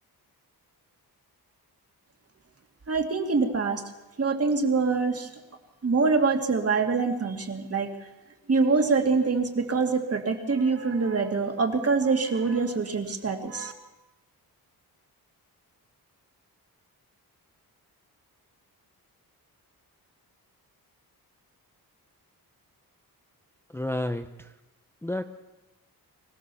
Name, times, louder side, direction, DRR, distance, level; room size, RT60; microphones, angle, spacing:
voice 1, 2.9-3.8 4.2-5.3 5.8-7.9 8.5-13.7, right 4 dB, 40° right, 4 dB, 2.5 m, -25 dB
voice 2, 23.7-24.5 25.0-25.2, left 1 dB, 5° left, 6 dB, 0.7 m, -30 dB
25.0 x 16.5 x 7.1 m, 1.0 s
wide cardioid pair, 140°, 38 cm